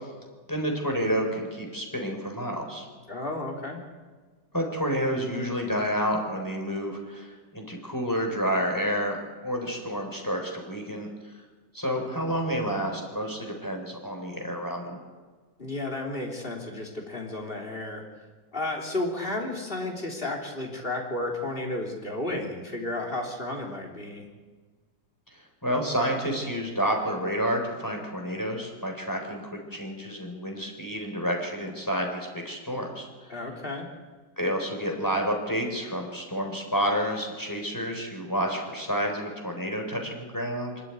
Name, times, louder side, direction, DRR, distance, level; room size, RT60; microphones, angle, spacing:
voice 1, 0.5-2.8 4.5-11.1 11.7-15.0 25.6-33.1 34.4-40.8, equal, 10° left, 2 dB, 3.9 m, -29 dB
voice 2, 3.1-3.8 15.6-18.0 18.5-24.3 33.3-33.9, left 2 dB, 30° left, 0 dB, 3.4 m, -32 dB
24.5 x 12.5 x 9.4 m, 1.4 s
omnidirectional pair, 2.0 m